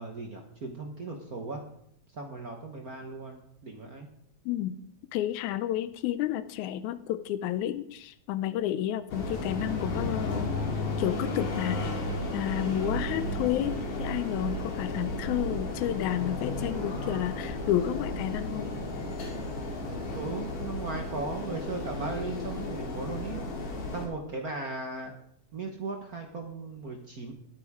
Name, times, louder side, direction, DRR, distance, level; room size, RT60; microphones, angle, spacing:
voice 1, 0.0-1.6 2.1-4.1 20.1-23.4 23.9-25.1 25.5-27.3, right 3 dB, 55° right, 3 dB, 1.0 m, -37 dB
voice 2, 4.5-4.8 5.1-10.5 11.0-11.9 12.3-18.7, left 12 dB, 90° left, 13 dB, 2.1 m, -31 dB
sound 1, 9.1-24.1, left 2 dB, 70° left, 3.7 m, -33 dB
20.0 x 9.1 x 3.6 m, 0.72 s
omnidirectional pair, 3.3 m